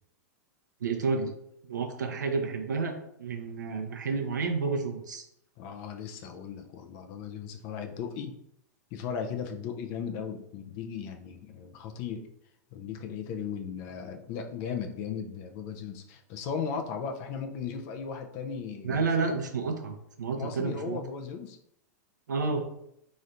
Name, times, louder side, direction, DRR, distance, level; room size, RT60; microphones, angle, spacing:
voice 1, 0.8-1.3 1.7-2.9 3.2-5.3 18.8-21.0 22.3-22.7, right 4 dB, 85° right, 4 dB, 0.7 m, -30 dB
voice 2, 5.6-8.3 8.9-12.3 12.7-19.1 20.3-21.6, left 7 dB, 50° left, 4 dB, 0.6 m, -37 dB
4.2 x 3.1 x 2.6 m, 0.74 s
hypercardioid pair, 110°, 10 cm